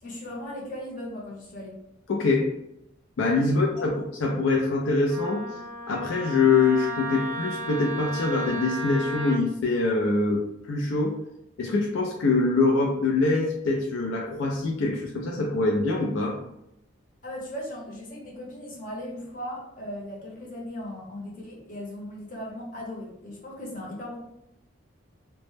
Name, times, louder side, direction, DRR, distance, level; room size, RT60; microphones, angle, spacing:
voice 1, 0.0-1.8 3.4-3.9 17.2-24.2, left 1 dB, 40° left, -3 dB, 0.7 m, -38 dB
voice 2, 2.1-2.5 3.2-5.4 5.9-10.4 10.7-11.2 11.6-16.4, left 3 dB, 80° left, 0 dB, 0.4 m, -24 dB
Wind instrument woodwind instrument, 5.1-9.4, right 1 dB, 45° right, 0.5 m, -34 dB
2.1 x 2.0 x 3.1 m, 0.79 s
head